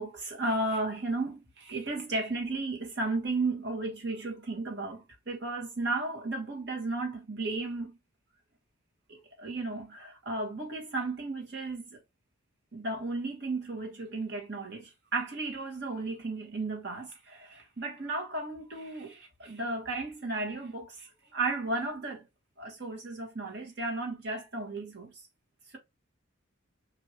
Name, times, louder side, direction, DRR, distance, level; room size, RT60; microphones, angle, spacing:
voice 1, 0.0-8.0 9.1-12.0 12.7-22.3 22.6-25.2 25.7-25.8, right 2 dB, 55° right, 1.5 m, -34 dB
5.1 x 2.6 x 3.0 m
head